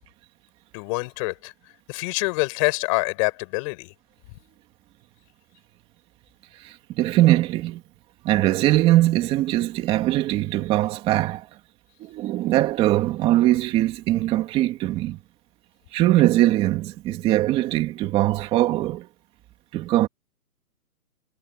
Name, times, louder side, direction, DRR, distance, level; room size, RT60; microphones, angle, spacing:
voice 1, 0.7-1.5 1.9-3.9, left 28 dB, 20° left, 5.4 m, -26 dB
voice 2, 6.6-7.8 8.2-11.5 12.0-15.2 15.9-19.1 19.7-20.1, right 15 dB, 10° right, 2.6 m, -21 dB
hypercardioid pair, 165°, 47 cm